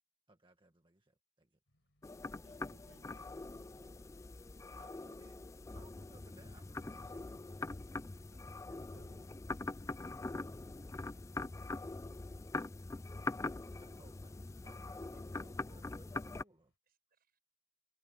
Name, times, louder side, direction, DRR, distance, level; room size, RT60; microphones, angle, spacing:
voice 1, 0.3-1.6 4.8-5.4 5.7-7.8 13.7-16.7, right 2 dB, 25° right, 1.6 m, -64 dB
sound 1, 1.7-16.8, left 1 dB, 70° left, 4.6 m, -78 dB
sound 2, 2.0-16.4, left 2 dB, 15° left, 0.4 m, -43 dB
voice 2, 2.4-3.8 8.7-9.2, right 2 dB, 80° right, 1.4 m, -65 dB
voice 3, 6.6-7.2 7.5-7.6 8.3-8.6 10.2-10.8 15.1-15.6 16.8-17.4, right 4 dB, 50° right, 7.2 m, -79 dB
head